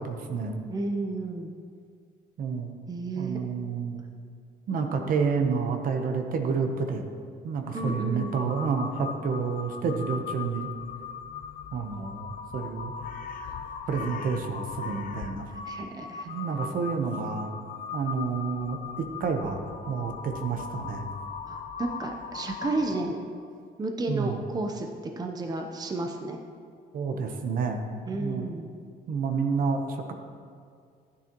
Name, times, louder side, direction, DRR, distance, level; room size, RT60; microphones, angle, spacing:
voice 1, 0.0-0.6 2.4-2.7 3.2-4.0 4.7-7.0 7.4-10.7 11.7-12.9 13.9-15.5 16.2-17.5 17.9-21.1 24.1-24.4 26.9-27.8 28.1-28.5 29.1-30.1, right 5 dB, 55° right, 5 dB, 0.9 m, -29 dB
voice 2, 0.7-1.5 2.9-3.4 7.7-8.3 15.5-16.3 21.5-23.2 23.8-24.9 25.2-26.4 28.1-28.7, right 2 dB, 25° right, 3 dB, 0.7 m, -32 dB
Crow, 7.7-23.2, left 6 dB, 55° left, 0.7 m, -39 dB
11.0 x 9.7 x 3.0 m, 2.2 s
cardioid pair, 110°, 17 cm